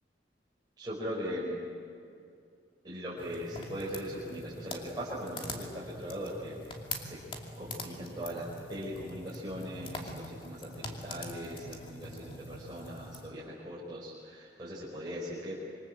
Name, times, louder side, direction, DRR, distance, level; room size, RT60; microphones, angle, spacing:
voice 1, 0.8-1.6 2.8-6.6 7.0-7.2 7.6-15.6, equal, 25° right, -7 dB, 5.3 m, -39 dB
sound 1, 3.2-13.3, left 2 dB, 30° left, 2.6 m, -44 dB
26.5 x 24.5 x 7.8 m, 2.4 s
head